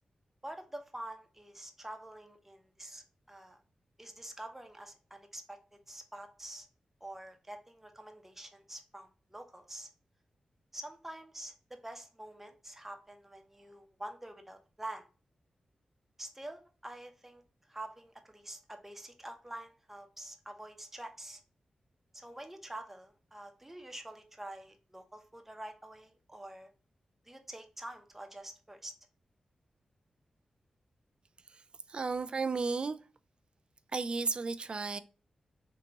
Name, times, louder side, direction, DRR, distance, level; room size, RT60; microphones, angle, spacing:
voice 1, 0.4-3.6 4.0-5.6 5.9-6.7 7.0-9.9 10.7-15.0 16.2-17.4 17.7-21.4 22.1-26.7 27.3-28.9, right 1 dB, 10° right, 0.8 m, -47 dB
voice 2, 31.4-33.1 33.9-35.0, right 4 dB, 45° right, 0.4 m, -34 dB
3.7 x 2.9 x 3.5 m
cardioid pair, 80°, 2 cm